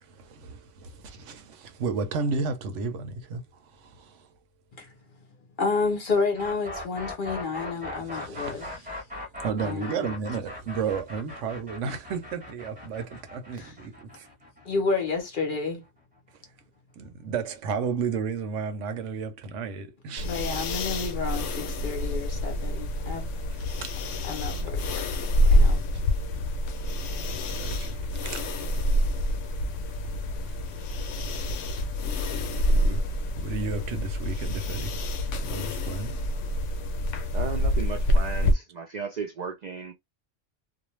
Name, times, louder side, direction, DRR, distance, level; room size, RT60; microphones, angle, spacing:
voice 1, 0.0-4.3 8.0-8.9 9.4-14.3 16.3-16.4 17.0-20.3 23.8-24.0 27.2-28.5 30.5-30.6 32.0-33.1 33.3-34.9 35.4-36.1, right 5 dB, 80° right, 1.0 m, -33 dB
voice 2, 5.6-8.7 9.6-10.0 13.6-13.7 14.6-15.8 20.2-23.3 24.2-25.1 25.5-25.8, left 4 dB, 50° left, 0.7 m, -30 dB
sound 1, 6.3-16.2, left 2 dB, 10° right, 0.8 m, -39 dB
sound 2, 20.2-38.5, left 1 dB, 80° left, 0.9 m, -27 dB
voice 3, 37.3-39.9, right 5 dB, 60° right, 0.4 m, -35 dB
2.5 x 2.1 x 3.0 m
omnidirectional pair, 1.3 m